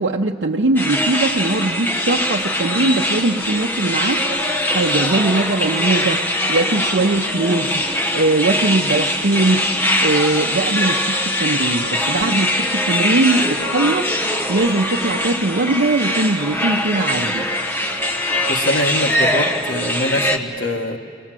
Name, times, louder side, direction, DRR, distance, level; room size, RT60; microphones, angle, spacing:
voice 1, 0.0-4.2 4.7-6.2 6.5-7.8 8.1-9.6 10.0-14.1 14.5-17.5, right 2 dB, 75° right, -1 dB, 0.7 m, -20 dB
sound 1, 0.8-20.4, left 1 dB, 10° left, 1.0 m, -22 dB
voice 2, 18.5-21.0, left 1 dB, 90° left, 3 dB, 1.4 m, -23 dB
27.5 x 20.0 x 7.5 m, 2.4 s
head